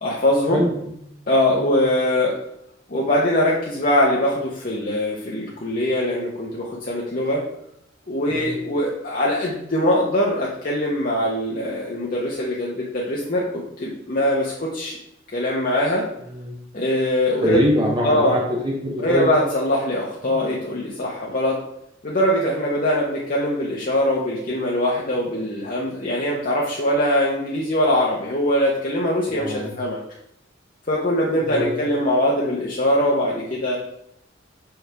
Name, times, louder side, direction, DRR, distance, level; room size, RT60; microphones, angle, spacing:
voice 1, 0.0-0.6 1.3-2.3 2.9-7.4 8.1-15.0 15.3-16.1 16.7-17.6 18.0-18.4 19.0-21.6 22.0-30.0 30.9-33.8, left 1 dB, 45° left, -4 dB, 0.8 m, -22 dB
voice 2, 17.4-19.3 20.2-20.4 29.3-29.7 31.5-31.8, equal, 25° right, -3 dB, 0.7 m, -23 dB
6.1 x 4.7 x 3.3 m, 0.79 s
head